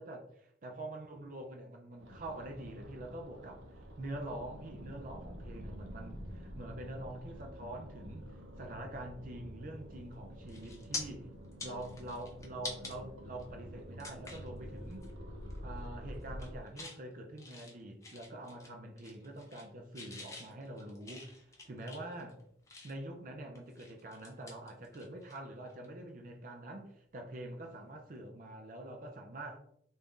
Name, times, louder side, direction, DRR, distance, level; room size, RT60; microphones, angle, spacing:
voice 1, 0.0-8.3 8.6-11.3 11.6-15.1 15.6-22.4 22.8-29.6, right 1 dB, 45° right, 3 dB, 0.5 m, -45 dB
sound 1, 2.0-16.6, equal, 75° right, 0.7 m, -48 dB
sound 2, 9.9-10.1 10.5-11.0 11.4-12.9 13.4-13.5 14.0-14.5 14.9-15.1 15.4-15.9 16.2-17.0 17.4-18.7 19.0-19.7 19.9-23.1 23.5-25.4 25.7-25.9 27.7-27.9, left 3 dB, 15° left, 0.5 m, -46 dB
3.4 x 2.6 x 3.5 m, 0.69 s
head